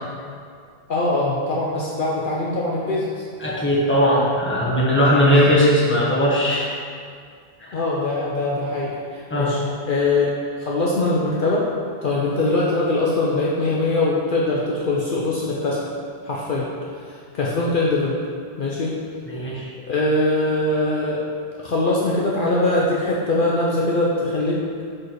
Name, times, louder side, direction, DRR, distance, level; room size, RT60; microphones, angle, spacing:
voice 1, 0.9-3.2 5.3-5.6 7.7-10.3 10.6-11.7 12.0-15.9 16.2-16.7 17.1-18.2 18.6-19.0 19.9-21.2 21.6-24.8, left 2 dB, 55° left, -5 dB, 0.9 m, -22 dB
voice 2, 3.4-6.7 7.6-7.8 9.3-9.6 19.3-19.7, equal, 10° left, -6 dB, 1.3 m, -18 dB
6.1 x 4.9 x 4.6 m, 2.2 s
omnidirectional pair, 1.1 m